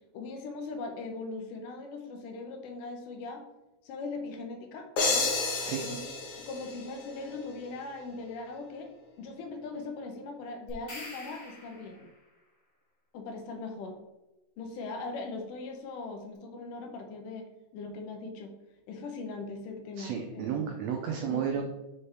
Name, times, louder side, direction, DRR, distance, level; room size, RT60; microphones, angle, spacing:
voice 1, 0.1-3.4 3.8-5.3 5.8-6.1 6.5-12.1 13.1-14.0 14.6-17.5 17.7-18.5 18.9-20.7 21.2-21.6, left 3 dB, 80° left, 4 dB, 2.5 m, -40 dB
sound 1, 5.0-7.6, left 3 dB, 60° left, 1.6 m, -31 dB
sound 2, 10.7-12.3, left 1 dB, 35° left, 1.3 m, -45 dB
voice 2, 20.0-21.6, right 8 dB, 85° right, 3 dB, 1.5 m, -32 dB
5.5 x 5.1 x 3.4 m, 0.96 s
omnidirectional pair, 3.8 m